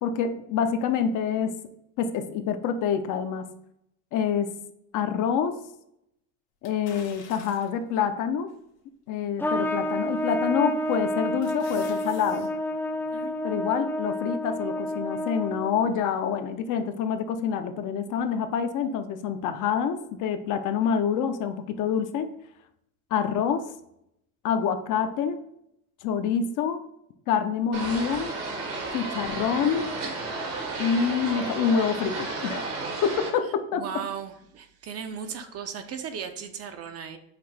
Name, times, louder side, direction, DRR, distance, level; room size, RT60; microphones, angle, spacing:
voice 1, 0.0-1.5 2.0-3.4 4.1-4.5 4.9-5.6 6.6-8.5 9.1-12.5 13.4-22.3 23.1-23.7 24.4-25.4 26.0-26.8 27.3-28.3 28.9-29.9 30.8-32.7 33.0-33.8, left 7 dB, 50° left, 8 dB, 0.6 m, -26 dB
sound 1, 6.6-7.9 8.5-8.6 10.2-10.5 10.9-12.5 12.8-12.9, left 5 dB, 85° left, 1.3 m, -48 dB
Trumpet, 9.4-15.9, equal, 5° left, 0.4 m, -29 dB
sound 2, 27.7-33.3, right 3 dB, 75° right, 1.7 m, -32 dB
voice 2, 33.7-37.2, right 7 dB, 40° right, 7 dB, 0.6 m, -36 dB
5.8 x 2.5 x 3.2 m, 0.78 s
supercardioid pair, 95°, 39 cm